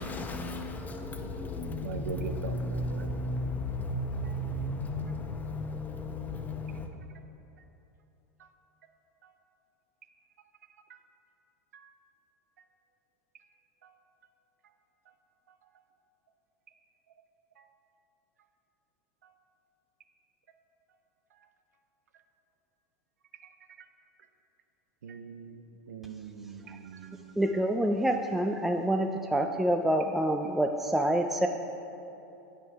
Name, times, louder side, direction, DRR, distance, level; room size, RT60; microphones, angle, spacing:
voice 1, 0.0-6.9, left 1 dB, 20° left, 4 dB, 0.9 m, -34 dB
voice 2, 1.8-3.1 25.0-25.6 25.9-27.4, right 5 dB, 85° right, 8 dB, 0.6 m, -41 dB
voice 3, 27.4-31.5, right 1 dB, 5° right, 4 dB, 0.4 m, -27 dB
9.1 x 6.4 x 4.7 m, 2.9 s
hypercardioid pair, 100°, 8 cm